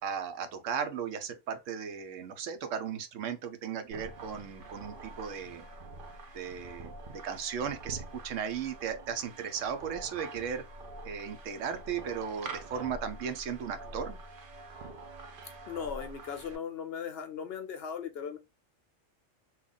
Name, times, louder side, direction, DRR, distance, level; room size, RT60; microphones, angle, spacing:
voice 1, 0.0-5.7 6.3-10.6 11.0-14.2, right 7 dB, 75° right, 1.0 m, -36 dB
sound 1, 3.9-16.6, right 2 dB, 50° right, 0.7 m, -46 dB
voice 2, 15.6-18.4, left 7 dB, 65° left, 0.7 m, -38 dB
2.9 x 2.4 x 3.8 m
omnidirectional pair, 1.3 m